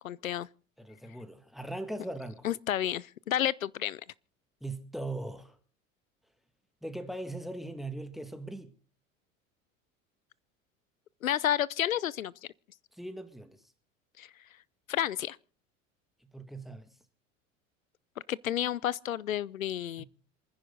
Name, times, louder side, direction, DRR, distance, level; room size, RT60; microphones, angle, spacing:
voice 1, 0.0-0.5 2.4-4.0 11.2-12.3 14.2-14.3 14.9-15.4 18.3-20.0, left 11 dB, 85° left, 0.7 m, -30 dB
voice 2, 0.8-2.5 4.6-5.6 6.8-8.7 12.9-13.6 16.2-16.9 20.0-20.1, right 2 dB, ahead, 2.0 m, -40 dB
27.5 x 10.0 x 4.0 m
hypercardioid pair, 75°, 39 cm